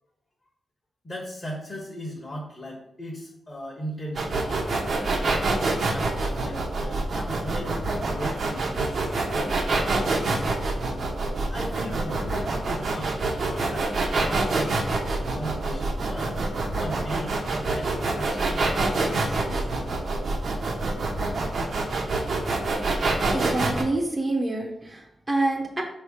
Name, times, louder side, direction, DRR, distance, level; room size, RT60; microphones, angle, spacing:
voice 1, 1.0-5.3 5.9-10.4 11.5-14.7 15.1-16.4 16.8-19.6, equal, 20° left, -3 dB, 1.3 m, -37 dB
sound 1, 4.2-23.8, right 3 dB, 50° right, 1.0 m, -26 dB
voice 2, 23.3-25.8, right 2 dB, 15° right, -1 dB, 1.0 m, -27 dB
5.5 x 3.3 x 5.6 m, 0.79 s
wide cardioid pair, 145°, 0 cm